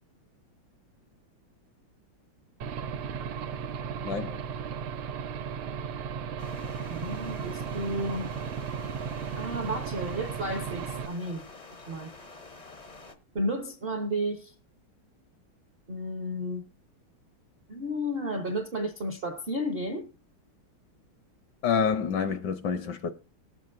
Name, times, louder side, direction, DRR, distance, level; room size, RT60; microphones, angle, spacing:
Aircraft / Engine, 2.6-11.1, right 7 dB, 90° right, 1.6 m, -35 dB
voice 1, 4.0-4.4 21.6-23.1, left 6 dB, 70° left, 1.1 m, -28 dB
sound 1, 6.4-13.1, left 3 dB, 50° left, 0.4 m, -48 dB
voice 2, 6.9-8.3 9.4-11.4 11.9-12.1 13.3-14.5 15.9-16.7 17.7-20.1, equal, 55° right, 0.6 m, -32 dB
19.5 x 7.7 x 2.5 m
omnidirectional pair, 2.3 m